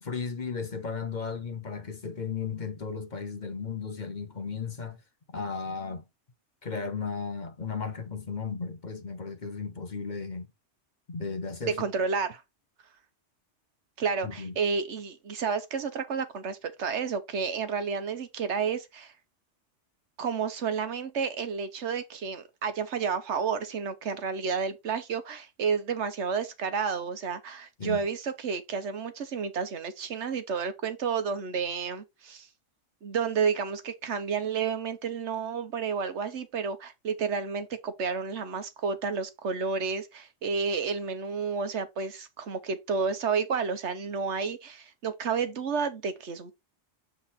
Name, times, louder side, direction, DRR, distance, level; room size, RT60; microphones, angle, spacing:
voice 1, 0.0-5.0 5.3-6.0 6.6-10.5 11.1-11.8 14.2-14.6 27.8-28.0, left 5 dB, 40° left, 1.0 m, -35 dB
voice 2, 11.8-12.4 14.0-19.1 20.2-32.5 33.0-46.5, right 5 dB, 70° right, 1.2 m, -31 dB
7.4 x 3.8 x 4.1 m
omnidirectional pair, 1.2 m